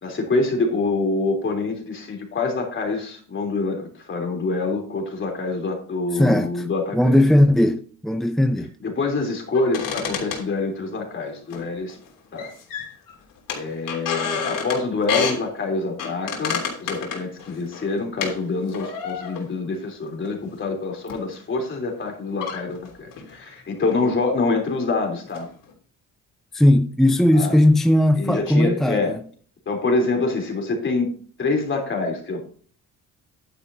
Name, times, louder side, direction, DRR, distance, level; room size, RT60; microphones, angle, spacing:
voice 1, 0.0-7.2 8.8-12.0 12.3-12.5 13.5-25.5 27.3-27.5 28.2-29.1 29.7-31.1 31.4-32.4, left 3 dB, 35° left, 3.5 m, -26 dB
voice 2, 6.1-6.7 6.9-8.7 26.5-29.1, left 1 dB, ahead, 0.5 m, -18 dB
sound 1, 9.5-11.0 11.5-12.1 12.3-13.1 13.5-15.4 16.0-18.4 18.7-19.6 20.2-20.4 21.1-21.2 22.0-22.1 22.4-23.3 23.9-24.1 24.4-24.9 25.3-25.7, left 6 dB, 80° left, 3.3 m, -30 dB
11.0 x 9.9 x 2.8 m
cardioid pair, 140°, 32 cm